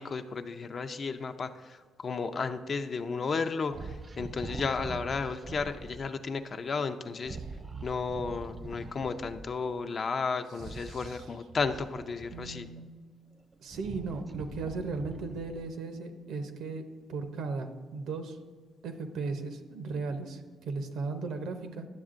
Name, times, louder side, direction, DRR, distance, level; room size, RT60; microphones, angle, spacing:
voice 1, 0.0-7.4 7.8-12.7, left 4 dB, 45° left, 8 dB, 0.4 m, -33 dB
sound 1, 3.7-6.0 7.2-9.5 10.5-12.8 13.4-15.8, right 3 dB, 25° right, 0.4 m, -43 dB
voice 2, 10.9-11.2 12.3-12.9 13.6-18.4 18.8-21.9, right 4 dB, 80° right, 7 dB, 0.7 m, -36 dB
10.5 x 7.1 x 2.5 m, 1.5 s
cardioid pair, 90°, 0 cm